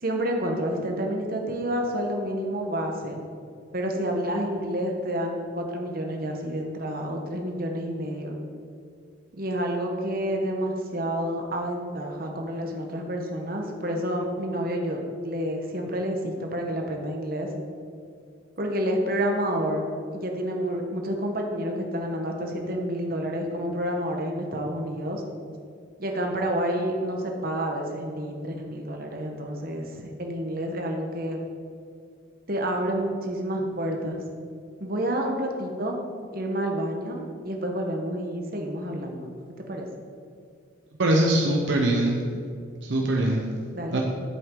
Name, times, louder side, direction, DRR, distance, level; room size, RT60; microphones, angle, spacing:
voice 1, 0.0-3.2 3.7-8.4 9.3-17.5 18.6-19.8 20.1-25.2 26.0-29.8 30.2-31.4 32.5-34.2 34.8-36.0 36.3-39.3 39.6-39.9 43.7-44.0, equal, 45° right, 2 dB, 1.2 m, -29 dB
voice 2, 41.0-42.2 42.8-43.4 43.9-44.0, right 1 dB, 65° right, 0 dB, 0.9 m, -22 dB
11.0 x 7.8 x 3.8 m, 2.3 s
head